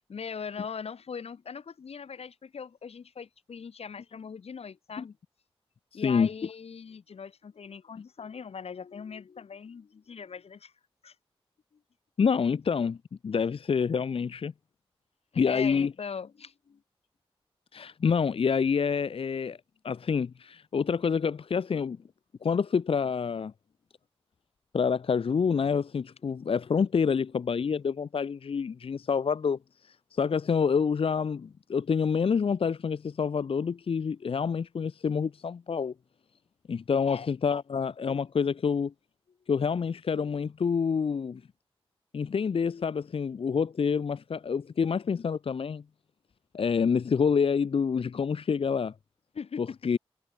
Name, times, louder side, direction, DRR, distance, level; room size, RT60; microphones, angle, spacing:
voice 1, 0.1-5.2 5.9-10.7 11.0-11.1 15.4-16.8 37.0-37.3 49.3-49.8, left 6 dB, 90° left, 1.4 m, -40 dB
voice 2, 5.9-6.3 12.2-13.0 13.2-14.5 15.4-15.9 17.7-19.6 19.8-22.0 22.4-23.5 24.7-35.9 36.7-38.9 39.5-41.4 42.1-45.8 46.5-48.9 49.6-50.0, left 6 dB, 65° left, 0.6 m, -27 dB
wide cardioid pair, 115°, 10 cm